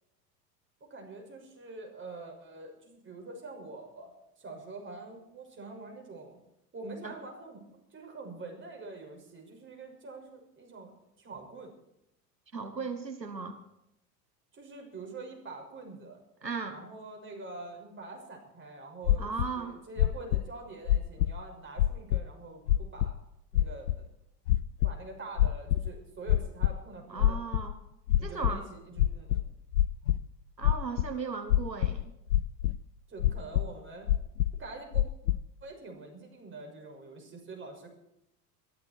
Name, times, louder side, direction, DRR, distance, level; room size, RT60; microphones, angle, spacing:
voice 1, 0.8-4.1 4.4-6.4 6.7-10.9 11.2-11.7 14.5-16.2 16.7-23.2 23.5-24.1 24.8-27.4 28.2-29.5 33.1-34.1 34.6-35.0 35.6-37.9, right 3 dB, 25° right, 2 dB, 6.3 m, -45 dB
voice 2, 12.5-13.6 16.4-16.8 19.2-19.8 27.1-27.8 28.2-28.6 30.6-32.1, right 5 dB, 90° right, 7 dB, 1.4 m, -36 dB
sound 1, 19.0-19.5 20.0-20.4 20.9-21.4 21.8-22.2 22.7-23.1 23.5-23.9 24.5-24.9 25.4-25.9 26.3-26.7 27.2-27.7 28.1-28.5 29.0-30.2 30.6-31.1 31.5-32.0 32.3-32.8 33.2-33.6 34.1-34.6 34.9-35.4, left 13 dB, 65° left, 0.7 m, -25 dB
22.5 x 13.0 x 4.5 m, 0.84 s
figure-of-eight pair, 80°, 49 cm